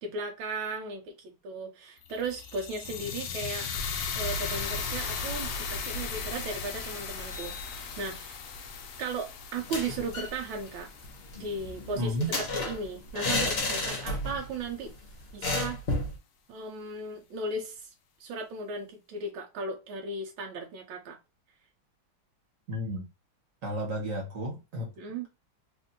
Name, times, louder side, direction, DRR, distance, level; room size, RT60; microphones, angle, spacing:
voice 1, 0.0-3.7 4.1-8.4 9.0-10.9 11.4-14.9 15.3-15.8 16.5-17.9 18.2-21.2 25.0-25.3, right 3 dB, 90° right, 1.5 m, -36 dB
sound 1, 2.0-12.2, left 5 dB, 80° left, 0.8 m, -37 dB
sound 2, 7.2-8.7, left 6 dB, 70° right, 1.4 m, -49 dB
sound 3, 9.6-10.4 10.7-10.8 11.0-14.5 14.8-14.9 15.4-16.2, left 2 dB, 40° left, 0.9 m, -31 dB
voice 2, 11.9-12.3 22.7-23.1 23.6-24.9, equal, 50° right, 1.2 m, -32 dB
3.4 x 2.6 x 2.5 m
omnidirectional pair, 2.2 m